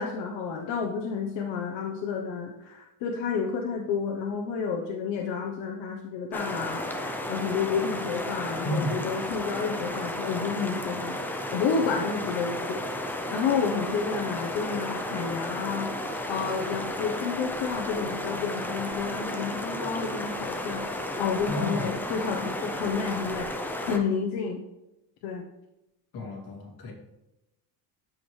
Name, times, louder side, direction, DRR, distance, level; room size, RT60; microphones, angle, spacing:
voice 1, 0.0-6.8 7.3-20.8 21.2-23.5 23.8-24.6 25.2-25.4, left 6 dB, 80° left, 1 dB, 1.0 m, -30 dB
sound 1, 6.3-24.0, left 1 dB, 5° left, 0.4 m, -33 dB
voice 2, 8.6-9.0 21.5-21.9 26.1-26.9, equal, 55° left, -3 dB, 2.7 m, -32 dB
13.0 x 5.1 x 3.2 m, 0.93 s
cardioid pair, 170°, 43 cm